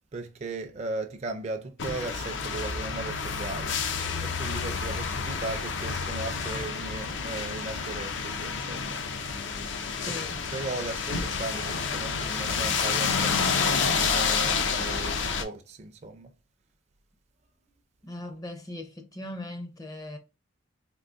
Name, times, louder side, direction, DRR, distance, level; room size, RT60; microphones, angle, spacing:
voice 1, 0.1-3.8 4.2-9.0 10.1-10.2 10.5-16.3, right 3 dB, 35° right, 0.4 m, -37 dB
sound 1, 1.8-15.4, left 5 dB, 70° left, 0.5 m, -29 dB
voice 2, 9.9-10.4 18.0-20.2, left 1 dB, 20° left, 0.5 m, -39 dB
3.7 x 2.6 x 2.4 m
head